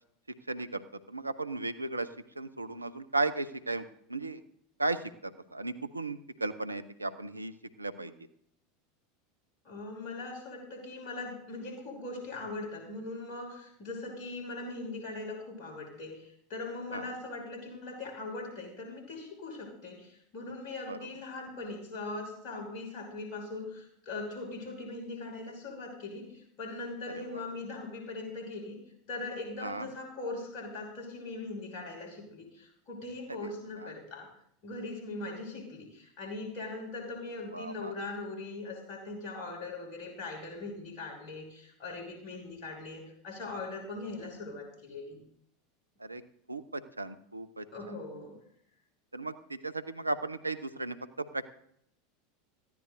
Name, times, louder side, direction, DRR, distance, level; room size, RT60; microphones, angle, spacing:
voice 1, 0.5-0.8 1.1-2.1 2.4-3.8 4.1-4.4 4.8-5.0 5.5-7.5 7.8-8.1 16.9-17.0 20.9-21.0 27.3-27.4 29.6-29.8 37.5-37.9 46.0-46.2 46.5-47.6 49.1-51.4, right 2 dB, 85° right, 12 dB, 0.7 m, -35 dB
voice 2, 9.6-28.8 29.1-34.3 34.6-45.2 47.7-48.4, left 2 dB, 45° left, 1 dB, 6.0 m, -40 dB
20.0 x 15.0 x 2.7 m, 0.70 s
figure-of-eight pair, 80°, 0 cm